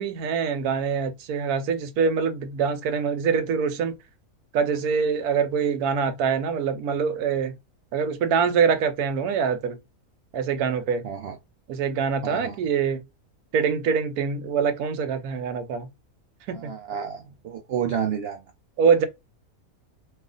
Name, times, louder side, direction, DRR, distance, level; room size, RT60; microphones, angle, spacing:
voice 1, 0.0-4.0 4.5-7.5 7.9-9.8 10.3-11.0 11.7-13.0 13.5-15.9 16.5-16.7 18.8-19.1, right 6 dB, 90° right, 1.1 m, -24 dB
voice 2, 11.0-11.4 12.2-12.6 16.5-18.4, right 8 dB, 70° right, 0.5 m, -30 dB
2.6 x 2.4 x 3.8 m
omnidirectional pair, 1.5 m